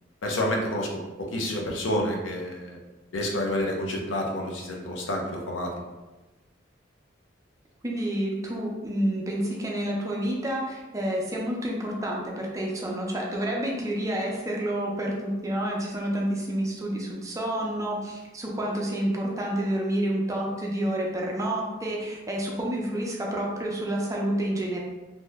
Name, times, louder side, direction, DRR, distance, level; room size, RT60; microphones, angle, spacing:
voice 1, 0.2-2.8 3.1-5.7, left 1 dB, 80° left, 0 dB, 0.6 m, -29 dB
voice 2, 7.8-24.8, right 1 dB, 15° right, -2 dB, 0.4 m, -29 dB
2.8 x 2.1 x 3.4 m, 1.1 s
head